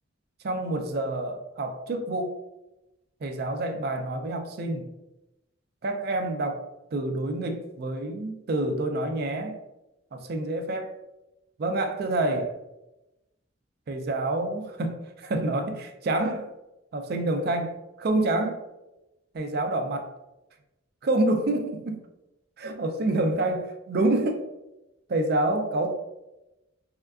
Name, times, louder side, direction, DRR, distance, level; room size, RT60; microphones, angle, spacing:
voice 1, 0.4-2.4 3.2-4.9 5.8-6.6 6.9-9.6 10.1-10.9 11.6-12.5 13.9-16.5 16.9-18.6 19.3-20.1 21.0-22.1 22.6-24.5 25.1-25.9, right 2 dB, 55° right, 6 dB, 0.4 m, -27 dB
3.5 x 2.3 x 2.3 m, 0.96 s
head